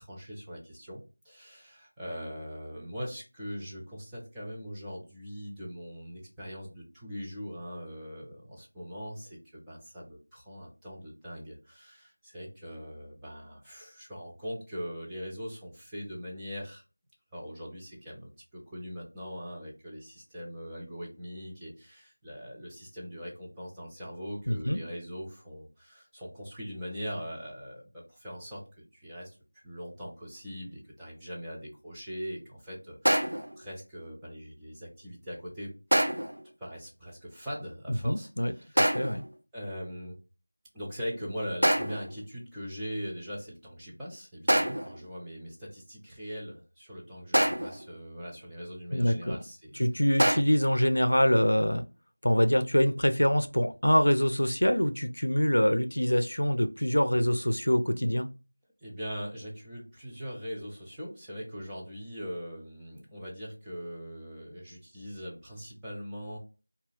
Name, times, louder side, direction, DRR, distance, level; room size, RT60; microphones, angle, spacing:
voice 1, 0.0-16.8 17.3-35.7 36.6-38.8 39.5-40.2 40.7-49.8 58.8-66.4, equal, 5° right, -9 dB, 0.3 m, -41 dB
voice 2, 24.5-24.8 37.9-39.2 48.9-49.4 49.8-51.8 52.2-58.3, equal, 90° left, 9 dB, 0.4 m, -25 dB
sound 1, 33.1-33.6 35.9-36.4 38.8-39.3 41.6-42.1 44.5-45.0 47.3-47.9 50.2-50.4, equal, 80° right, 0.5 m, -25 dB
2.4 x 2.3 x 3.3 m, 0.31 s
figure-of-eight pair, 175°, 0 cm